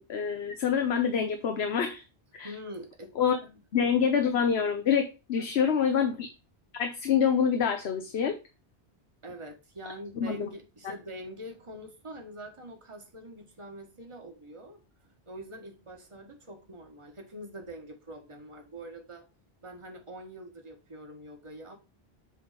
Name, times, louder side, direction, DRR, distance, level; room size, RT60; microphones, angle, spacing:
voice 1, 0.0-2.0 2.3-2.5 3.2-3.4 3.7-6.3 6.7-8.4 10.2-10.5, left 7 dB, 80° left, 6 dB, 1.1 m, -26 dB
voice 2, 2.4-3.1 3.4-3.6 5.4-5.7 9.2-14.8 15.3-19.3 19.6-21.8, equal, 30° right, 3 dB, 1.5 m, -44 dB
8.0 x 3.5 x 5.1 m, 0.29 s
omnidirectional pair, 1.1 m